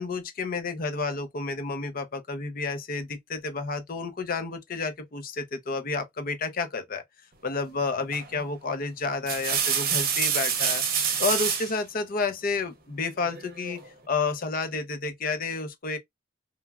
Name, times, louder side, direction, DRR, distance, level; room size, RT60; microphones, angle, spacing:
voice 1, 0.0-7.0 7.4-10.8 11.2-16.0, left 4 dB, 50° left, 0.6 m, -30 dB
sound 1, 8.1-8.4 9.0-11.7 13.2-13.9, right 7 dB, 50° right, 0.7 m, -27 dB
3.1 x 2.3 x 2.3 m
head